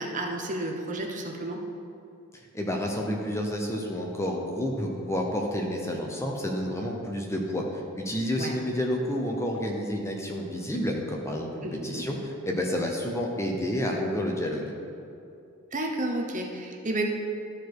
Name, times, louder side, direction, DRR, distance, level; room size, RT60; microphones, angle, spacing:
voice 1, 0.0-1.6 8.4-8.6 11.6-12.0 15.7-17.1, right 1 dB, 35° right, 2 dB, 0.9 m, -31 dB
voice 2, 2.3-14.7, equal, 15° left, 0 dB, 0.8 m, -30 dB
12.5 x 4.7 x 4.7 m, 2.6 s
head